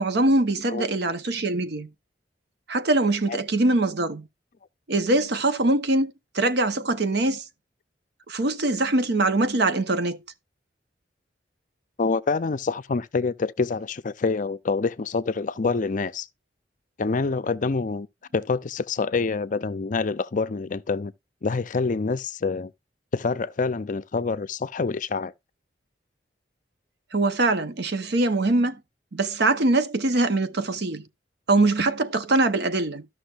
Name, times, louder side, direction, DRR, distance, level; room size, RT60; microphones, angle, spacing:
voice 1, 0.0-1.9 2.7-4.3 4.9-7.4 8.3-10.2 27.1-28.8 29.1-31.0 31.5-33.1, right 2 dB, 65° right, 0.8 m, -23 dB
voice 2, 12.0-16.3 17.0-18.1 18.3-21.1 21.4-22.7 23.1-25.3, left 4 dB, 45° left, 0.5 m, -26 dB
13.5 x 6.1 x 2.4 m
head